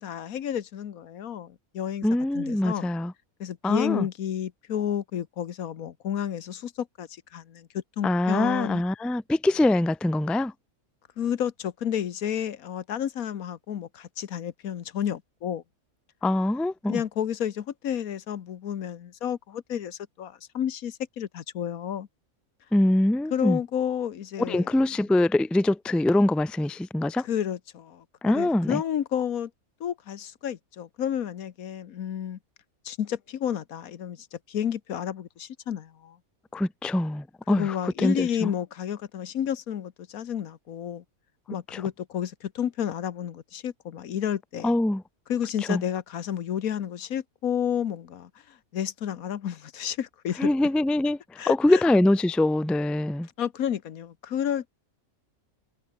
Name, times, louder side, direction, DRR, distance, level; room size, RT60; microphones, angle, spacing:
voice 1, 0.0-2.1 2.3-2.9 3.4-8.8 11.2-15.6 16.9-22.1 23.3-24.8 27.2-29.5 29.8-32.4 32.8-36.2 37.5-41.0 41.5-44.8 45.3-50.5 51.4-51.8 53.4-54.7, left 9 dB, 80° left, 1.5 m, -31 dB
voice 2, 2.0-3.1 3.6-4.1 8.0-10.5 16.2-17.0 22.7-23.6 24.5-27.3 28.2-28.8 36.5-38.5 41.7-41.8 44.6-45.0 45.7-45.8 50.4-53.3, left 1 dB, ahead, 0.5 m, -24 dB
omnidirectional pair, 1.5 m